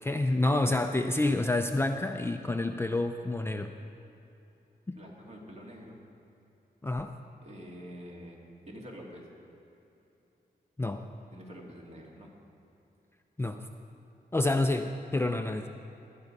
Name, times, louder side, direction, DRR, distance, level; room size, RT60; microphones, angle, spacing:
voice 1, 0.0-3.7 4.9-5.0 6.8-7.1 10.8-11.0 13.4-13.6 14.3-15.7, left 2 dB, 15° left, 5 dB, 0.4 m, -28 dB
voice 2, 5.0-6.0 7.4-9.3 11.3-12.3, equal, 40° right, -1 dB, 2.3 m, -46 dB
18.5 x 11.0 x 5.4 m, 2.9 s
wide cardioid pair, 165°, 17 cm